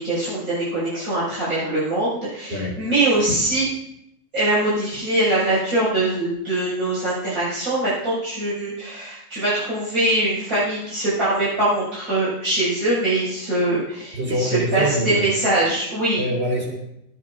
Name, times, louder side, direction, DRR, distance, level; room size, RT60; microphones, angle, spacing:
voice 1, 0.0-3.7 4.3-16.2, right 2 dB, 85° right, -10 dB, 7.2 m, -22 dB
voice 2, 2.5-2.8 14.1-15.2 16.2-16.7, right 1 dB, 45° right, -2 dB, 4.7 m, -24 dB
18.5 x 17.5 x 2.7 m, 0.81 s
omnidirectional pair, 1.5 m